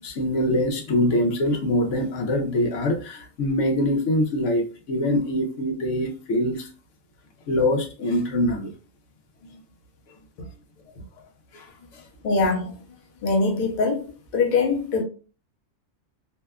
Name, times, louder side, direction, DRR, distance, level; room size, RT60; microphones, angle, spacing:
voice 1, 0.0-6.7 7.5-8.7 10.4-10.5 11.5-12.0, left 1 dB, 85° left, 1.0 m, -24 dB
voice 2, 12.2-12.7 13.2-14.1 14.3-15.0, left 4 dB, 50° left, 0.6 m, -22 dB
2.7 x 2.2 x 2.3 m
omnidirectional pair, 1.3 m